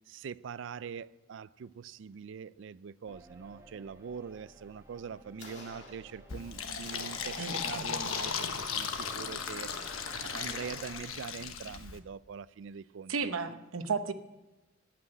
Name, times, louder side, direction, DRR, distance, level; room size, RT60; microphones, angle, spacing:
voice 1, 0.1-13.3, right 6 dB, 60° right, 0.4 m, -43 dB
sound 1, 3.1-11.1, right 1 dB, 15° right, 0.8 m, -56 dB
sound 2, 5.4-6.4 6.8-11.3, left 2 dB, 55° left, 2.2 m, -50 dB
Fill (with liquid), 6.3-12.0, left 6 dB, 85° left, 1.1 m, -37 dB
voice 2, 7.4-7.9 13.1-14.1, right 5 dB, 85° right, 0.9 m, -34 dB
15.5 x 6.0 x 9.9 m
head